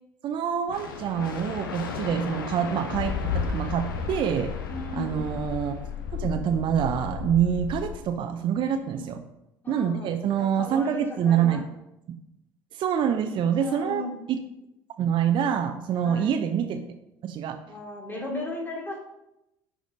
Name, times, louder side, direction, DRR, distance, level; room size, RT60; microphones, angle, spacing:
voice 1, 0.2-4.5 4.9-5.7 6.1-9.2 9.7-11.7 12.7-14.4 15.0-16.8 17.2-17.6, right 8 dB, 45° right, 6 dB, 0.7 m, -26 dB
sound 1, 0.7-6.3, left 4 dB, 80° left, 0.9 m, -37 dB
sound 2, 2.9-8.0, left 7 dB, 50° left, 1.0 m, -33 dB
voice 2, 4.7-5.3 8.9-9.1 9.6-10.1 10.4-11.6 13.6-14.1 16.0-16.4 17.7-19.0, left 2 dB, 15° left, -2 dB, 3.0 m, -36 dB
10.0 x 5.0 x 3.8 m, 0.90 s
figure-of-eight pair, 60°, 11 cm